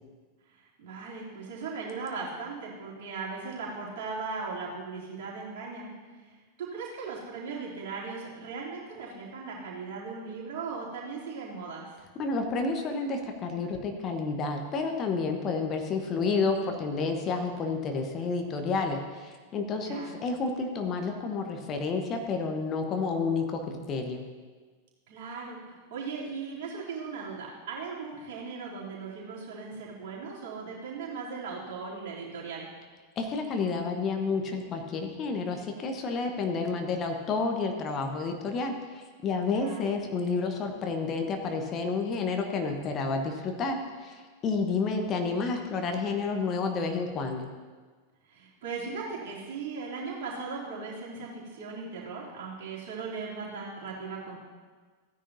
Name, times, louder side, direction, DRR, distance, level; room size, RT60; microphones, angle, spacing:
voice 1, 0.5-5.9 6.2-6.3 6.6-12.0 19.8-20.1 25.1-32.7 39.5-39.9 44.8-45.1 48.3-54.4, right 4 dB, 50° right, -5 dB, 3.2 m, -38 dB
voice 2, 12.1-24.2 33.2-47.5, left 4 dB, 30° left, 4 dB, 1.1 m, -30 dB
15.5 x 9.9 x 2.8 m, 1.4 s
figure-of-eight pair, 90°, 0 cm